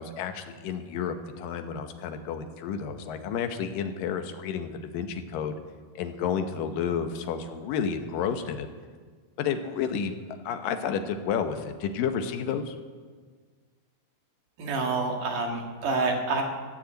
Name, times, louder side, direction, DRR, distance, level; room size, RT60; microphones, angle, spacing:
voice 1, 0.0-5.6 6.0-8.7 9.4-10.1 10.4-12.8, left 7 dB, 80° left, 7 dB, 2.7 m, -31 dB
voice 2, 14.6-16.4, right 3 dB, 65° right, 2 dB, 3.2 m, -27 dB
15.5 x 9.9 x 8.0 m, 1.5 s
omnidirectional pair, 3.9 m